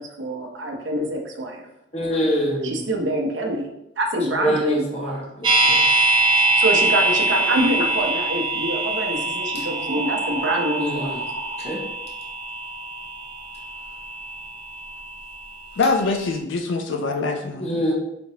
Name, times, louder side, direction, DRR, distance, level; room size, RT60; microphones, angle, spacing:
voice 1, 0.0-1.7 2.6-3.7 4.0-5.2 6.6-11.7, right 1 dB, 75° right, 2 dB, 0.8 m, -25 dB
voice 2, 1.9-2.8 4.4-5.8 9.5-9.6 10.8-11.2 11.6-11.8 17.6-17.9, equal, 35° left, -2 dB, 0.7 m, -25 dB
sound 1, 5.4-15.5 15.8-15.9, right 2 dB, 25° right, 0.5 m, -23 dB
voice 3, 15.8-17.8, left 3 dB, 80° left, 5 dB, 0.4 m, -24 dB
5.0 x 3.0 x 2.8 m, 0.85 s
head